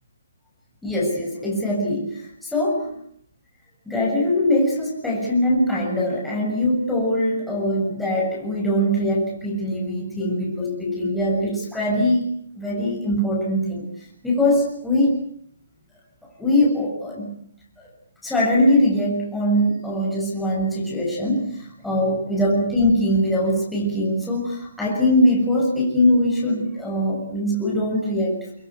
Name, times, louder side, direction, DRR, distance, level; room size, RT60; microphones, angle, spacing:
voice 1, 0.8-2.9 3.9-12.3 12.6-13.9 14.2-15.2 16.2-17.4 18.2-28.4, left 1 dB, 5° left, -4 dB, 6.9 m, -22 dB
24.0 x 23.5 x 8.2 m, 0.66 s
hypercardioid pair, 150°, 0 cm